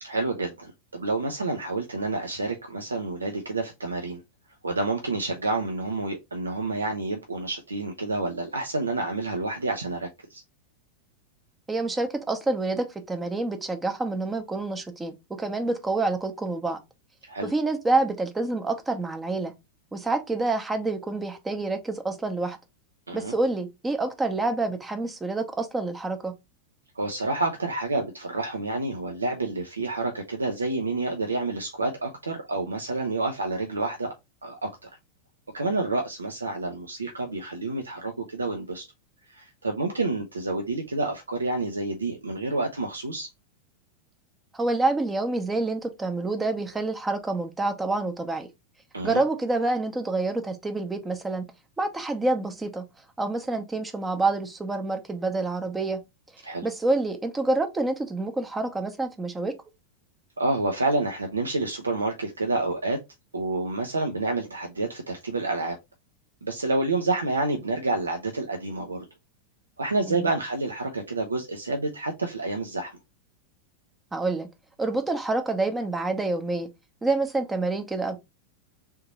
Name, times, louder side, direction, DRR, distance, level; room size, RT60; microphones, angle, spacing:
voice 1, 0.0-4.2 4.6-10.4 17.3-17.5 23.1-23.3 26.9-34.1 34.4-34.9 35.5-38.8 39.3-43.3 48.9-49.2 56.4-56.7 60.4-63.0 63.3-65.8 66.4-69.0 69.8-73.0, right 2 dB, 75° right, 0.6 m, -29 dB
voice 2, 11.7-16.8 17.5-19.5 19.9-22.6 23.1-26.3 44.5-48.5 49.0-51.4 51.8-52.9 53.2-56.0 56.6-59.5 70.1-70.3 74.1-74.5 74.8-76.7 77.0-78.2, right 2 dB, 10° right, 0.8 m, -27 dB
3.6 x 2.8 x 4.1 m
figure-of-eight pair, 90°, 0 cm